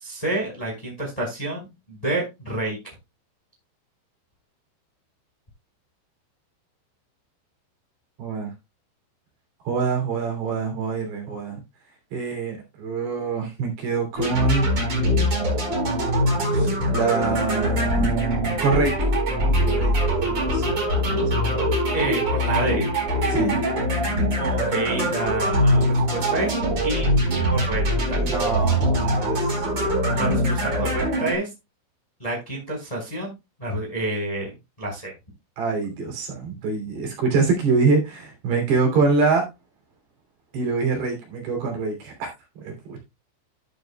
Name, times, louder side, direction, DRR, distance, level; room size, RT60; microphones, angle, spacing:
voice 1, 0.0-2.8 21.9-22.8 24.4-25.9 26.1-26.6 26.8-27.8 28.1-28.2 30.1-31.5 32.2-33.3 33.6-34.5 34.8-35.1, right 2 dB, 10° left, 0 dB, 3.5 m, -28 dB
voice 2, 8.2-8.5 9.6-11.6 12.1-14.7 16.5-18.9 19.4-21.7 23.3-23.6 28.1-30.4 35.6-39.5 40.5-42.3 42.6-43.0, right 4 dB, 60° right, 2 dB, 4.8 m, -25 dB
sound 1, 14.2-31.3, equal, 30° right, 4.8 m, -22 dB
12.5 x 9.0 x 2.3 m, 0.24 s
omnidirectional pair, 5.6 m